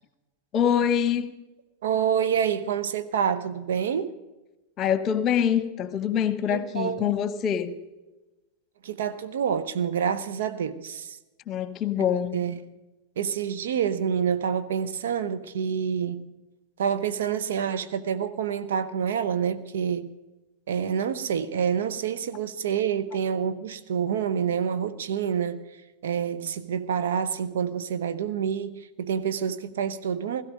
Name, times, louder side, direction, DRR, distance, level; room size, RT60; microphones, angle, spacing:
voice 1, 0.5-1.3 4.8-7.7 11.5-12.4, left 8 dB, 30° left, 1.1 m, -25 dB
voice 2, 1.8-4.1 6.5-7.2 8.8-11.2 12.3-12.6 13.2-16.3 16.8-20.1 20.7-25.6 26.0-30.4, right 8 dB, 60° right, 0.9 m, -27 dB
17.0 x 15.0 x 5.1 m
figure-of-eight pair, 90°, 0 cm